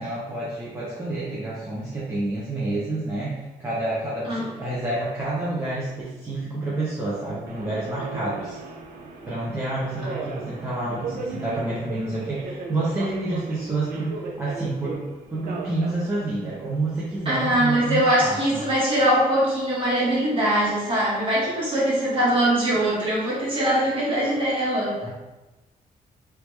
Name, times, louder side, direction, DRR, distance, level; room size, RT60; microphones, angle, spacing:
voice 1, 0.0-8.6 9.3-15.0 15.3-18.7 25.0-25.1, right 2 dB, 15° right, -8 dB, 0.6 m, -29 dB
Subway metro underground, 7.5-17.2, right 4 dB, 80° right, 0.6 m, -37 dB
voice 2, 17.2-25.0, right 1 dB, 35° right, -7 dB, 1.4 m, -22 dB
3.3 x 3.1 x 3.1 m, 1.1 s
wide cardioid pair, 170°, 15 cm